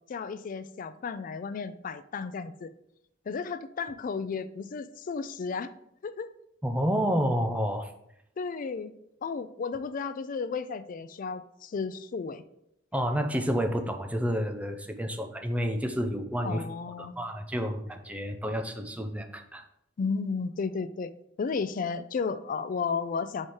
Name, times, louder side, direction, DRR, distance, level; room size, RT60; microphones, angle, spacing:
voice 1, 0.1-2.7 3.3-5.7 6.0-6.3 8.4-8.9 9.2-12.4 16.4-17.1 20.0-23.5, left 5 dB, 45° left, 13 dB, 0.4 m, -33 dB
voice 2, 6.6-7.9 12.9-16.6 17.0-19.6, equal, 5° right, 5 dB, 0.5 m, -29 dB
4.9 x 4.3 x 4.6 m, 0.77 s
head